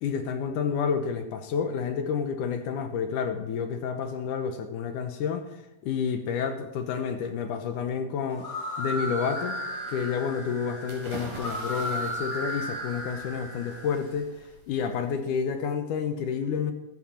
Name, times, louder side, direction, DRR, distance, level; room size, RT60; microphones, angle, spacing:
voice 1, 0.0-5.5 5.8-8.5 8.8-9.6 9.9-14.3 14.7-16.7, left 6 dB, 70° left, 8 dB, 2.0 m, -29 dB
sound 1, 8.3-14.1, equal, 25° left, 6.7 m, -35 dB
sound 2, 10.9-15.7, right 2 dB, 80° right, 4.7 m, -45 dB
15.0 x 13.5 x 4.4 m, 0.94 s
omnidirectional pair, 4.6 m